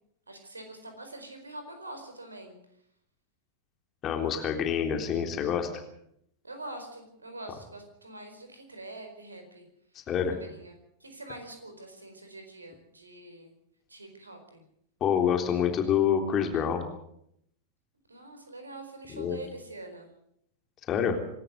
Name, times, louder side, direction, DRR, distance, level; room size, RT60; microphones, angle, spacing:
voice 1, 0.3-2.6 6.4-9.6 9.9-10.0 10.3-13.5 13.9-14.6 18.1-20.1, right 2 dB, 80° right, 6 dB, 4.5 m, -44 dB
voice 2, 4.0-5.7 10.1-10.4 15.0-16.8 19.1-19.4 20.9-21.2, left 8 dB, 30° left, 5 dB, 3.5 m, -27 dB
26.5 x 13.5 x 8.0 m, 0.74 s
figure-of-eight pair, 90°, 0 cm